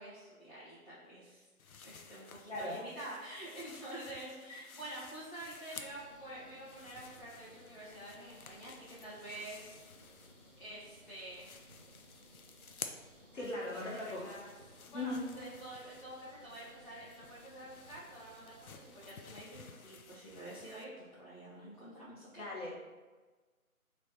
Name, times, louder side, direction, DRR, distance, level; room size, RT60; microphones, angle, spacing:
voice 1, 0.0-1.5 1.8-9.8 10.6-11.5 13.3-13.5 13.7-14.5 14.9-22.4, right 1 dB, 35° left, -10 dB, 1.0 m, -48 dB
sound 1, 1.6-6.2 6.5-10.7 11.0-20.8, left 5 dB, 70° left, 0.5 m, -54 dB
voice 2, 2.5-2.8 13.3-14.2 14.9-15.2 17.0-17.1 22.3-22.7, left 2 dB, 55° left, -4 dB, 1.2 m, -39 dB
sound 2, 5.8-19.3, equal, 40° right, 0.6 m, -60 dB
3.2 x 3.2 x 4.2 m, 1.3 s
figure-of-eight pair, 170°, 43 cm